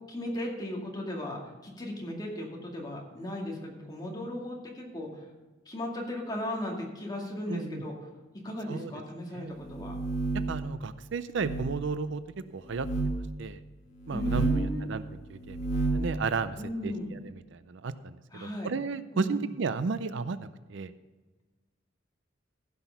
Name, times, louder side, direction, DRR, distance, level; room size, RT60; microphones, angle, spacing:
voice 1, 0.1-5.1 5.7-8.0 8.4-9.9 14.1-14.9 16.6-17.1 18.3-18.7 19.1-19.4, left 1 dB, 20° left, -1 dB, 2.2 m, -36 dB
voice 2, 7.5-7.8 8.7-8.9 9.3-9.6 10.5-12.2 12.5-13.6 14.1-16.6 16.8-20.4 20.7-20.9, right 4 dB, 65° right, 13 dB, 0.5 m, -34 dB
sound 1, 9.6-10.6 11.3-11.7 12.7-13.1 14.0-14.7 15.4-16.1, right 3 dB, 40° left, 1.9 m, -30 dB
15.5 x 5.9 x 5.7 m, 1.2 s
head